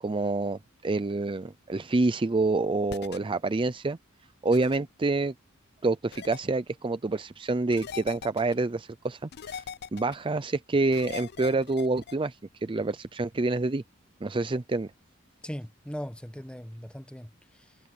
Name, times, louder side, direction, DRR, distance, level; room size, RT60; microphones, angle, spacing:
voice 1, 0.0-4.0 4.4-5.3 5.8-9.6 9.9-13.8 14.2-14.9, right 3 dB, 25° right, 0.5 m, -27 dB
sound 1, 2.9-3.2 4.5-4.8 6.1-6.4 7.7-8.5 9.3-10.2 10.9-12.1, left 7 dB, 55° left, 0.5 m, -40 dB
voice 2, 15.4-17.8, equal, 5° left, 1.3 m, -39 dB
head